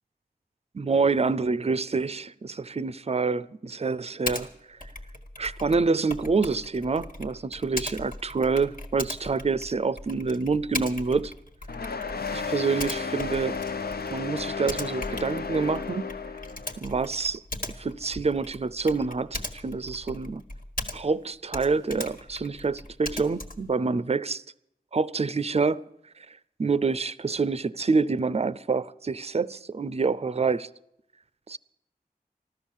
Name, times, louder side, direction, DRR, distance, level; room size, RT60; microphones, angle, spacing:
voice 1, 0.7-4.9 5.4-11.3 12.3-13.6 14.1-16.0 16.8-17.4 17.8-20.4 20.9-24.4 24.9-25.8 26.2-30.7 31.5-31.6, right 4 dB, 40° right, 0.5 m, -27 dB
Typing, 4.2-4.5 4.8-21.2 21.5-23.7, left 1 dB, 60° left, 1.7 m, -38 dB
sound 1, 11.7-16.8, left 5 dB, 80° left, 0.6 m, -33 dB
14.5 x 13.0 x 7.3 m
wide cardioid pair, 55°, 16 cm